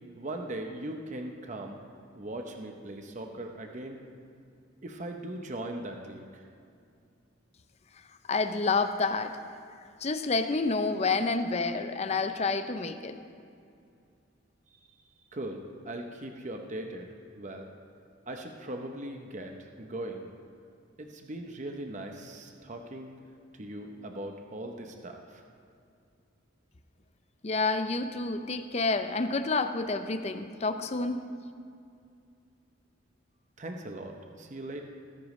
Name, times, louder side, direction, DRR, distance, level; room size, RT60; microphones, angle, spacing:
voice 1, 0.2-1.8 2.2-4.0 4.8-6.5 14.9-15.0 15.3-17.1 17.3-17.7 18.3-20.3 21.0-23.1 23.5-25.4 33.6-34.8, right 1 dB, 35° right, 3 dB, 0.7 m, -39 dB
voice 2, 8.3-9.4 10.0-13.2 27.4-31.2, left 3 dB, 30° left, 9 dB, 0.5 m, -29 dB
18.0 x 10.0 x 3.2 m, 2.4 s
head